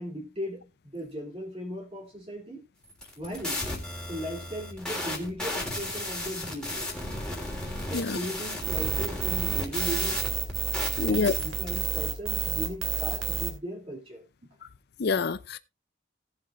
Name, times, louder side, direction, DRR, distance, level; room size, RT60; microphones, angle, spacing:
voice 1, 0.0-2.6 3.2-3.6 4.1-6.9 7.8-10.2 10.9-14.2, equal, 30° right, 2.8 m, -37 dB
sound 1, 2.9-11.9, left 1 dB, 5° left, 3.1 m, -34 dB
sound 2, 8.6-13.5, right 6 dB, 85° right, 2.9 m, -30 dB
voice 2, 11.0-11.3 15.0-15.6, left 4 dB, 55° left, 0.5 m, -26 dB
18.5 x 7.7 x 2.5 m
head